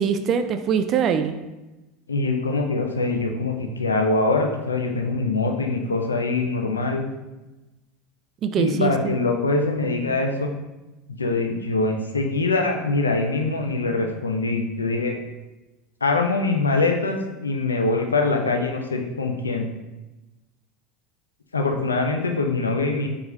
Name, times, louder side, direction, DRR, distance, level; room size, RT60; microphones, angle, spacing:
voice 1, 0.0-1.3 8.4-9.1, right 7 dB, 40° right, 8 dB, 0.4 m, -23 dB
voice 2, 2.1-7.0 8.6-10.5 11.2-15.2 16.0-19.7 21.5-23.1, left 3 dB, 85° left, 3 dB, 0.5 m, -23 dB
4.9 x 2.4 x 3.7 m, 1.1 s
figure-of-eight pair, 75°, 0 cm